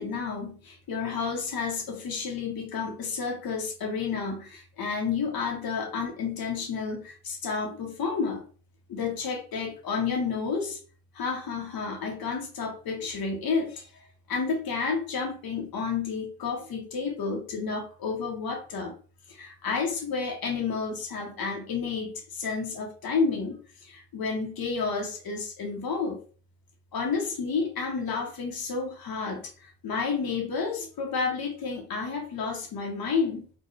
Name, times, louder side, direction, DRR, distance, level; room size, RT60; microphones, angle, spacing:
voice 1, 0.0-8.4 8.9-10.8 11.1-18.9 19.3-26.2 26.9-33.5, left 5 dB, 80° left, 2 dB, 0.8 m, -31 dB
4.3 x 2.1 x 3.2 m, 0.41 s
wide cardioid pair, 155°, 35 cm